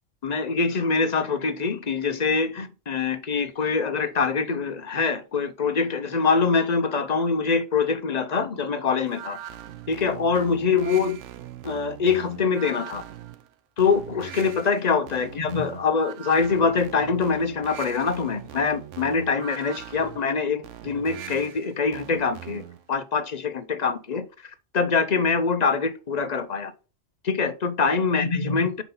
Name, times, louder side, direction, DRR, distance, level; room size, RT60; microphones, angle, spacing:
voice 1, 0.2-9.4 9.9-11.2 11.6-13.0 13.8-24.2 24.7-26.7 27.2-28.8, left 5 dB, 45° left, 0.6 m, -24 dB
sound 1, 9.1-22.9, right 11 dB, 70° right, 1.0 m, -41 dB
5.9 x 4.1 x 5.3 m
omnidirectional pair, 1.3 m